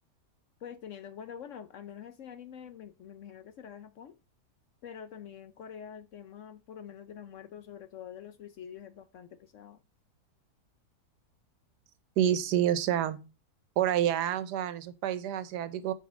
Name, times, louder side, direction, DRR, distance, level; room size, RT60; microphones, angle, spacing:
voice 1, 0.6-4.1 4.8-9.8, left 8 dB, 65° left, 0.8 m, -46 dB
voice 2, 12.2-13.2 13.8-15.9, right 11 dB, 85° right, 1.3 m, -28 dB
9.4 x 4.7 x 5.0 m
omnidirectional pair, 1.7 m